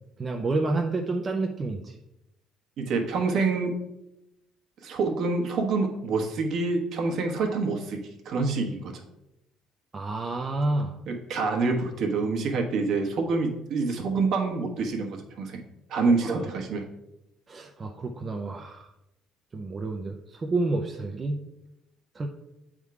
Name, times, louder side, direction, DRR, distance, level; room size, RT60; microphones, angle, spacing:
voice 1, 0.2-1.9 9.9-11.0 16.2-16.5 17.5-18.9 19.5-21.4 22.1-22.3, right 2 dB, 25° right, 3 dB, 0.5 m, -29 dB
voice 2, 2.8-3.7 4.8-8.9 11.1-15.6 15.9-16.8, right 4 dB, 60° right, 2 dB, 1.2 m, -27 dB
8.1 x 3.6 x 4.7 m, 0.90 s
cardioid pair, 125°, 0 cm